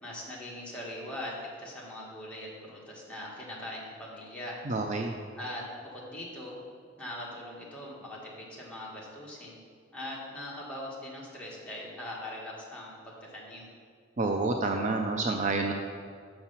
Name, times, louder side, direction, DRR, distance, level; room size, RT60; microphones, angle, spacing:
voice 1, 0.0-4.6 5.4-6.6 7.0-9.6 9.9-13.7, left 1 dB, 5° left, -6 dB, 1.5 m, -41 dB
voice 2, 4.7-5.1 14.2-15.7, right 3 dB, 40° right, 3 dB, 0.4 m, -28 dB
6.4 x 5.9 x 5.6 m, 2.1 s
head